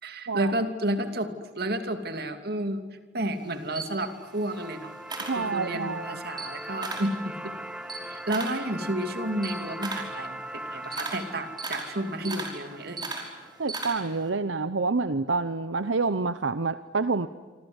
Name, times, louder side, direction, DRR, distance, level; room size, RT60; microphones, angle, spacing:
voice 1, 0.0-1.3 1.6-2.8 3.1-4.9 5.4-7.5 8.0-13.0, right 1 dB, 55° right, 8 dB, 2.7 m, -31 dB
Camera, 3.3-5.9 6.3-7.2 7.5-14.3, right 3 dB, 25° right, 5.2 m, -37 dB
sound 1, 3.9-14.0, right 1 dB, 5° right, 1.1 m, -40 dB
voice 2, 5.2-6.1 13.6-17.3, right 4 dB, 80° right, 12 dB, 0.9 m, -27 dB
28.0 x 25.5 x 8.1 m, 1.4 s
head